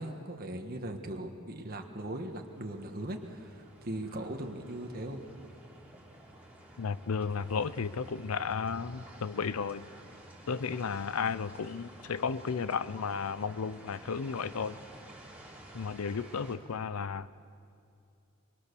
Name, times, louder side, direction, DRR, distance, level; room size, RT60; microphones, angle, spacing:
voice 1, 0.0-5.2, right 1 dB, 45° right, 4 dB, 1.4 m, -39 dB
sound 1, 2.1-16.6, right 1 dB, 5° right, 3.1 m, -52 dB
voice 2, 6.8-9.9 10.5-14.8 15.7-17.3, left 5 dB, 80° left, 15 dB, 0.5 m, -33 dB
23.5 x 22.5 x 6.8 m, 2.5 s
head